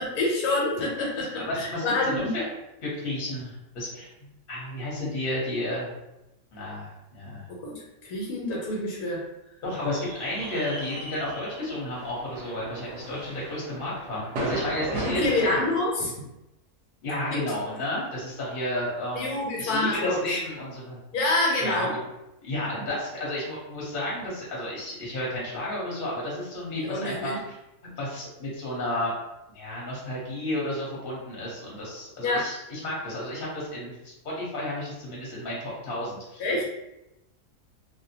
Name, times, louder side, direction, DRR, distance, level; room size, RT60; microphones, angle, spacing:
voice 1, 0.0-1.3 1.6-2.3 7.5-7.7 8.0-9.2 15.0-16.1 17.3-17.4 19.1-20.2 21.1-21.9 26.8-27.4 32.2-32.4 36.4-36.6, left 2 dB, 80° left, -3 dB, 1.1 m, -27 dB
voice 2, 1.2-2.4 2.8-4.1 4.5-5.9 6.5-7.4 9.6-15.6 17.0-21.0 21.6-22.0 22.4-27.6 28.0-29.1 29.5-36.6, left 1 dB, 40° left, -5 dB, 1.0 m, -32 dB
sound 1, 9.7-15.7, right 1 dB, 60° right, 0.8 m, -36 dB
2.5 x 2.1 x 2.8 m, 0.91 s
omnidirectional pair, 1.6 m